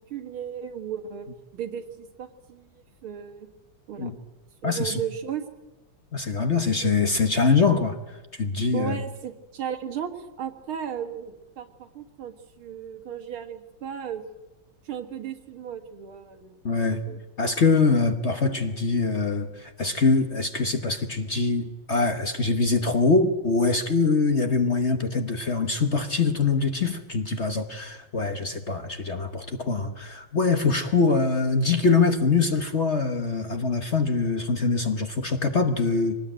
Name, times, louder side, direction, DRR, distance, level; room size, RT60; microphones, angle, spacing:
voice 1, 0.1-1.3 1.5-2.7 3.0-3.5 3.9-4.1 4.6-5.5 6.5-6.9 8.7-10.1 10.4-14.2 14.9-17.2, right 8 dB, 80° right, 6 dB, 2.6 m, -35 dB
voice 2, 4.6-5.0 6.1-9.0 16.6-17.0 17.4-36.2, left 4 dB, 40° left, 7 dB, 1.1 m, -23 dB
24.0 x 19.0 x 9.0 m, 1.1 s
omnidirectional pair, 2.3 m